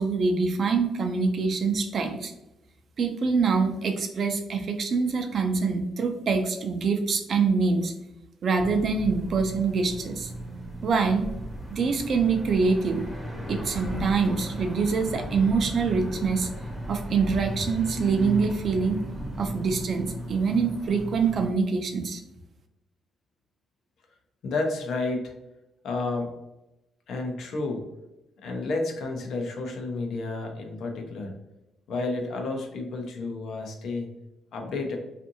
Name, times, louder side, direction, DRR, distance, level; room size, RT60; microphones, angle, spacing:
voice 1, 0.0-2.3 3.0-7.9 8.4-10.3 10.8-11.3 11.7-13.0 13.5-16.5 16.9-19.0 19.4-22.2, right 4 dB, 55° right, 5 dB, 0.4 m, -25 dB
sound 1, 8.6-21.5, equal, 10° right, 0.7 m, -36 dB
voice 2, 24.4-25.3 25.8-26.3 27.1-27.8 28.4-31.4 31.9-34.1 34.5-35.0, left 3 dB, 70° left, 3 dB, 0.6 m, -31 dB
2.6 x 2.5 x 2.6 m, 0.93 s
cardioid pair, 90°, 0 cm